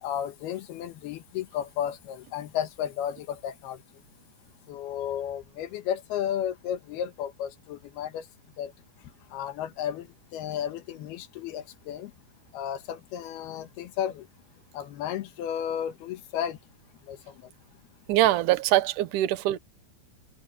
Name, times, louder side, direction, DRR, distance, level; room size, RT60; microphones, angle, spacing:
voice 1, 0.0-3.8 4.7-8.2 8.6-8.7 9.3-10.1 10.3-12.1 12.5-14.2 14.7-16.6 17.1-17.2, left 10 dB, 85° left, 3.3 m, -33 dB
voice 2, 18.1-19.6, right 14 dB, 65° right, 2.4 m, -23 dB
omnidirectional pair, 4.4 m